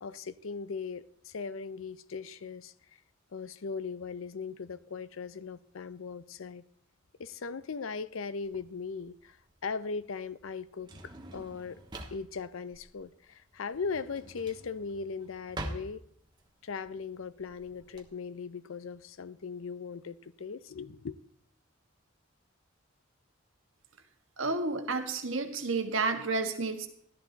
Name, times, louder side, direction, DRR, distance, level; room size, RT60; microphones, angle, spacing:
voice 1, 0.0-2.7 3.3-6.6 7.2-9.4 9.6-11.8 12.1-16.0 16.6-21.2, left 5 dB, 75° left, 0.6 m, -39 dB
Drawer open or close, 8.4-18.0, right 1 dB, 20° right, 1.3 m, -46 dB
voice 2, 24.4-26.9, right 3 dB, 70° right, 1.6 m, -31 dB
14.0 x 12.0 x 4.0 m
head